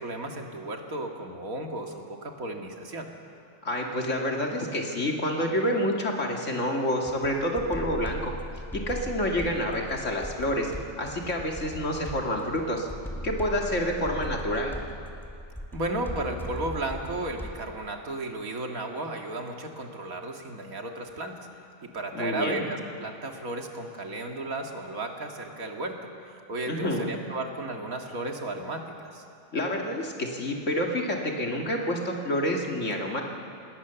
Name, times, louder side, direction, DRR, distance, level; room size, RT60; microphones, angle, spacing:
voice 1, 0.0-3.1 15.7-21.5 21.8-26.0 26.5-29.2, right 2 dB, 85° right, 2 dB, 2.5 m, -34 dB
voice 2, 3.6-8.3 8.7-12.9 13.2-14.7 22.1-22.6 26.7-27.1 29.5-33.2, equal, 60° left, 0 dB, 2.7 m, -28 dB
sound 1, 7.1-17.7, equal, ahead, 2.1 m, -39 dB
27.0 x 20.0 x 7.0 m, 2.5 s
omnidirectional pair, 1.4 m